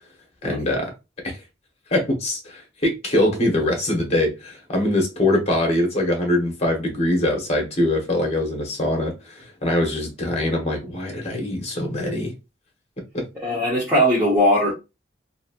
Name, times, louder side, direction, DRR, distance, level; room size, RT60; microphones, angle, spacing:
voice 1, 0.4-0.9 1.2-1.4 1.9-12.3 13.1-13.2, left 1 dB, 35° left, 1.1 m, -23 dB
voice 2, 13.4-14.7, equal, 10° right, 0.9 m, -19 dB
3.0 x 2.7 x 2.4 m
head